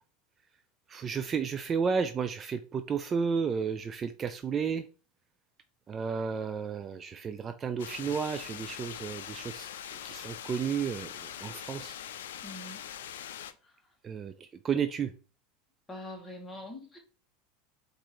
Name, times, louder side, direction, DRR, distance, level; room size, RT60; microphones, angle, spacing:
voice 1, 0.9-4.8 5.9-9.7 10.0-11.9 14.0-15.1, right 6 dB, 30° right, 0.4 m, -32 dB
sound 1, 7.8-13.5, left 10 dB, 85° left, 0.4 m, -42 dB
voice 2, 12.4-12.9 13.6-13.9 15.9-17.0, left 1 dB, 15° left, 1.6 m, -44 dB
4.3 x 2.6 x 4.6 m
supercardioid pair, 105°, 0 cm